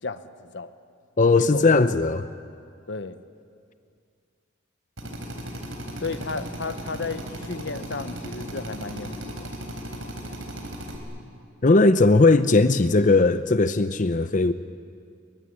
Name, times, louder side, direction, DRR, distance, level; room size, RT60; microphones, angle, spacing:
voice 1, 0.0-0.7 1.5-1.6 2.9-3.2 6.0-9.5, left 4 dB, 60° left, 11 dB, 1.0 m, -33 dB
voice 2, 1.2-2.3 11.6-14.5, left 3 dB, 40° left, 11 dB, 0.6 m, -18 dB
Drill, 5.0-11.0, equal, 75° right, 4.0 m, -36 dB
23.0 x 23.0 x 10.0 m, 2.3 s
head